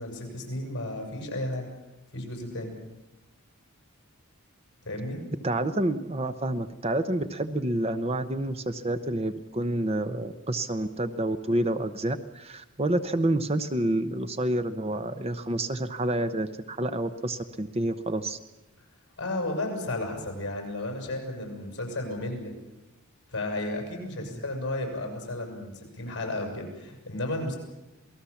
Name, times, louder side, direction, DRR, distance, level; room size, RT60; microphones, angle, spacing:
voice 1, 0.0-1.7 2.1-2.8 4.8-5.2 19.2-22.5 23.3-27.6, left 1 dB, 55° left, 2 dB, 7.6 m, -33 dB
voice 2, 5.4-18.4, right 1 dB, 30° right, 10 dB, 0.8 m, -28 dB
28.0 x 19.0 x 7.2 m, 0.97 s
head